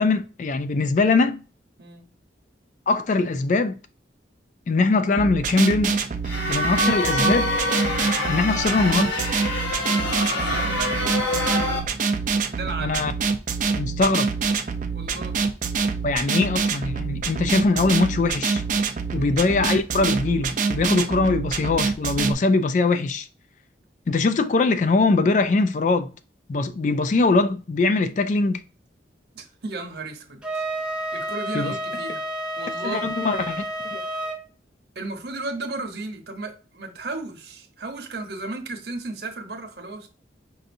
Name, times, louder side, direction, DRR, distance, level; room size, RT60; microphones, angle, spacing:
voice 1, 0.0-1.4 2.9-3.8 4.7-6.0 6.5-7.5 8.3-9.2 12.8-13.1 13.7-14.3 16.0-18.6 19.1-23.3 24.1-26.1 26.5-28.6 31.5-31.7 32.8-34.0, left 3 dB, 40° left, 0.3 m, -22 dB
sound 1, 5.2-22.3, right 5 dB, 45° right, 0.5 m, -26 dB
sound 2, 6.2-11.8, left 1 dB, 90° left, 1.3 m, -26 dB
voice 2, 9.8-11.8 12.5-13.0 14.9-15.5 19.1-19.4 29.3-30.6 31.1-32.3 32.6-33.2 34.9-40.1, right 3 dB, 60° right, 0.9 m, -35 dB
Wind instrument woodwind instrument, 30.4-34.4, right 1 dB, 5° right, 0.8 m, -30 dB
5.5 x 2.5 x 2.6 m
head